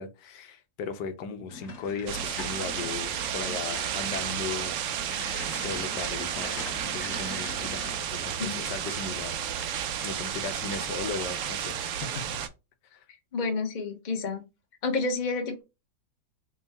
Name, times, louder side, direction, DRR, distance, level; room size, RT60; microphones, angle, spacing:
voice 1, 0.0-4.8 5.5-9.4 10.0-12.2 12.9-13.0, left 5 dB, 80° left, 1.2 m, -37 dB
sound 1, 1.5-8.2, left 3 dB, 55° left, 1.3 m, -43 dB
sound 2, 2.1-12.5, right 9 dB, 75° right, 0.7 m, -32 dB
voice 2, 13.3-14.4 14.8-15.6, left 3 dB, 35° left, 0.7 m, -29 dB
3.6 x 2.2 x 4.1 m
omnidirectional pair, 1.8 m